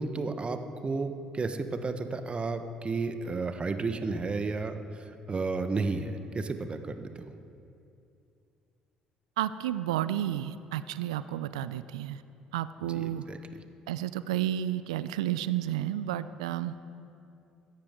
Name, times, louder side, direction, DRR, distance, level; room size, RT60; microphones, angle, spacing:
voice 1, 0.0-7.3 12.8-13.4, right 3 dB, 30° right, 8 dB, 1.1 m, -33 dB
voice 2, 9.4-12.2 12.5-13.2 13.9-16.7, right 12 dB, 80° right, 14 dB, 0.4 m, -31 dB
16.5 x 13.0 x 3.7 m, 2.6 s
hypercardioid pair, 50°, 3 cm